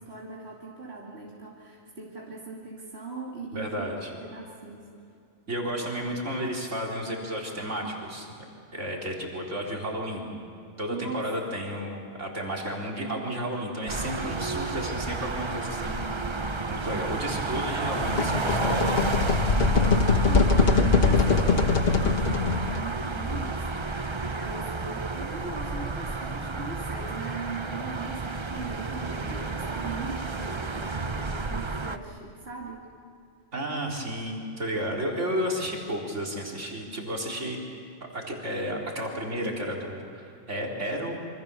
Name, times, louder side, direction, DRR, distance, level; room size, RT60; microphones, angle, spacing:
voice 1, 0.0-4.9 10.9-11.5 19.6-32.9, right 4 dB, 55° right, -4 dB, 3.0 m, -39 dB
voice 2, 3.5-4.1 5.5-8.3 8.7-10.3 10.8-16.4 16.7-19.1 33.5-37.6 38.1-41.3, equal, 75° right, -2 dB, 4.3 m, -32 dB
sound 1, 13.9-32.0, right 3 dB, 25° right, 0.8 m, -31 dB
sound 2, 18.0-22.9, left 5 dB, 55° left, 1.5 m, -23 dB
27.5 x 25.5 x 7.0 m, 2.6 s
omnidirectional pair, 1.2 m